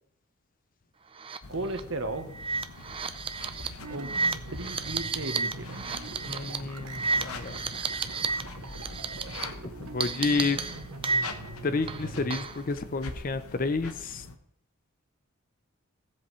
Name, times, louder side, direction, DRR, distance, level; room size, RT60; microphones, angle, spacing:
sound 1, 1.2-1.4 1.7-1.8 2.3-8.4 8.7-9.4 10.0-11.5 11.9-12.6, right 4 dB, 25° right, 0.5 m, -32 dB
sound 2, 1.4-14.4, left 3 dB, 85° left, 1.0 m, -44 dB
voice 1, 1.5-2.3 3.9-4.1 4.5-5.8, right 2 dB, 60° right, 7 dB, 1.1 m, -35 dB
sound 3, 3.8-12.4, right 3 dB, 85° right, 0.9 m, -43 dB
voice 2, 6.2-7.6 9.8-10.6 11.6-14.3, left 3 dB, 40° left, 11 dB, 0.6 m, -30 dB
16.0 x 7.7 x 3.2 m, 0.72 s
head